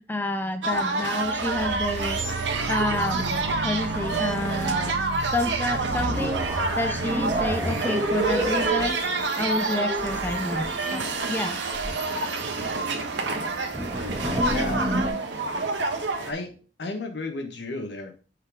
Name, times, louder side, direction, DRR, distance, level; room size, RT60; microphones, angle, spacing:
voice 1, 0.0-2.2 2.7-5.0 5.3-9.0 9.4-11.6, left 2 dB, 10° left, 8 dB, 0.4 m, -29 dB
sound 1, 0.6-16.3, right 3 dB, 85° right, 1.2 m, -28 dB
sound 2, 1.1-16.1 16.4-16.5, right 5 dB, 65° right, 0.3 m, -37 dB
sound 3, 3.2-4.9 5.4-5.5 5.7-13.0 13.5-15.1, right 1 dB, 20° right, 1.7 m, -31 dB
voice 2, 14.3-14.9 16.3-16.5 16.8-18.1, left 2 dB, 70° left, 5 dB, 1.3 m, -33 dB
6.4 x 4.0 x 4.9 m, 0.38 s
head